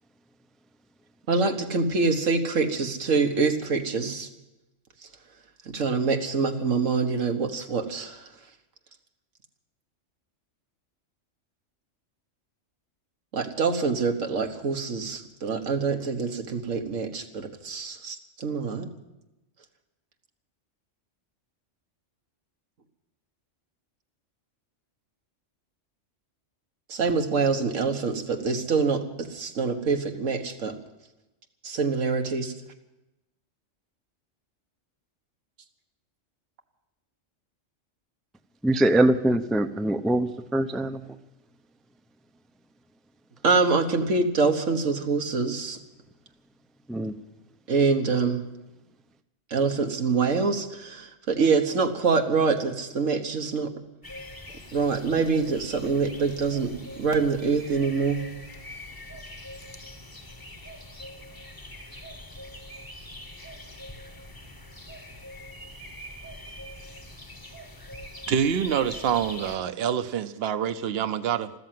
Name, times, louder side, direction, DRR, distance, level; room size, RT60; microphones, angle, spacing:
voice 1, 1.3-4.3 5.7-8.3 13.3-18.9 26.9-30.8 31.6-32.5 43.4-45.8 47.7-48.4 49.5-53.7 54.7-56.7 57.0-58.2, right 4 dB, 90° right, 1.7 m, -25 dB
voice 2, 38.6-41.2 46.9-47.1, right 1 dB, ahead, 0.4 m, -23 dB
sound 1, 54.0-69.6, left 1 dB, 20° left, 1.0 m, -43 dB
voice 3, 68.3-71.5, right 8 dB, 55° right, 0.9 m, -26 dB
14.5 x 13.5 x 7.6 m
omnidirectional pair, 1.3 m